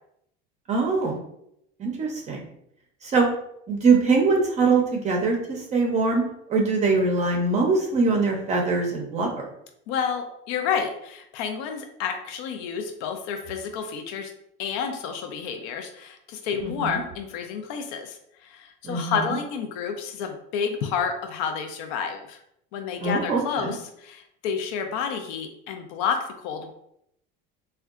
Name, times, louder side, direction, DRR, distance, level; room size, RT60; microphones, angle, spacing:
voice 1, 0.7-1.2 1.8-2.5 3.0-3.3 3.7-6.2 6.5-9.4 16.6-17.0 18.8-19.2 23.0-23.7, right 4 dB, 30° right, 1 dB, 0.5 m, -23 dB
voice 2, 9.9-14.3 14.6-22.4 22.7-26.7, left 6 dB, 90° left, 5 dB, 0.4 m, -30 dB
3.6 x 2.2 x 2.3 m, 0.76 s
cardioid pair, 140°, 21 cm